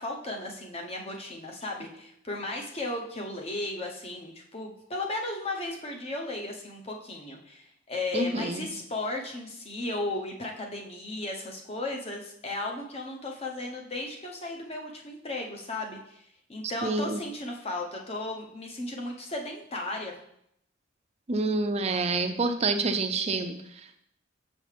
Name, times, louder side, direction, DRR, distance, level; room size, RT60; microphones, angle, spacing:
voice 1, 0.0-20.1, left 2 dB, 30° left, 1 dB, 0.9 m, -35 dB
voice 2, 8.1-8.7 16.8-17.2 21.3-24.0, right 3 dB, 30° right, 7 dB, 0.5 m, -28 dB
6.4 x 5.4 x 3.4 m, 0.74 s
head